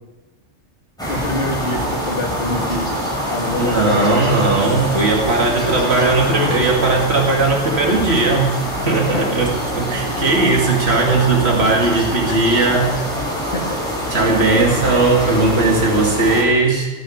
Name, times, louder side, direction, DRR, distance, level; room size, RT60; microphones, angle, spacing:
sound 1, 1.0-16.4, equal, 5° left, 5.8 m, -24 dB
voice 1, 1.1-3.0 3.3-4.2 8.9-9.2 12.3-12.4 13.5-13.8, left 1 dB, 45° left, 0 dB, 2.7 m, -25 dB
voice 2, 3.6-8.5 8.8-12.9 14.1-16.9, right 3 dB, 55° right, -1 dB, 2.6 m, -17 dB
18.5 x 8.3 x 8.6 m, 1.2 s
omnidirectional pair, 1.3 m